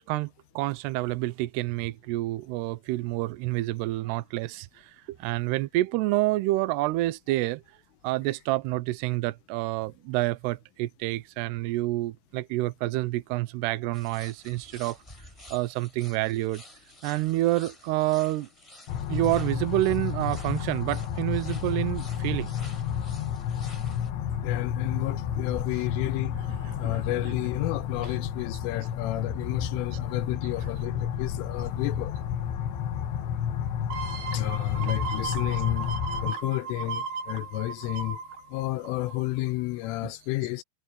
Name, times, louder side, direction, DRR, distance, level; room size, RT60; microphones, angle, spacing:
voice 1, 0.6-4.9 5.2-7.6 8.0-15.0 15.5-16.6 17.0-18.5 19.1-22.5 26.5-27.4 28.1-28.2 29.9-30.0 30.6-30.7 40.0-40.1, right 18 dB, 90° right, 2.3 m, -28 dB
sound 1, 13.9-24.1, left 1 dB, 5° left, 4.4 m, -51 dB
sound 2, 18.9-36.3, left 9 dB, 70° left, 3.6 m, -31 dB
voice 2, 24.4-26.4 26.8-32.1 34.3-35.9 36.2-38.2 38.5-40.6, left 17 dB, 85° left, 3.3 m, -31 dB
sound 3, 33.9-39.4 39.8-39.9, right 5 dB, 60° right, 3.2 m, -36 dB
omnidirectional pair, 5.8 m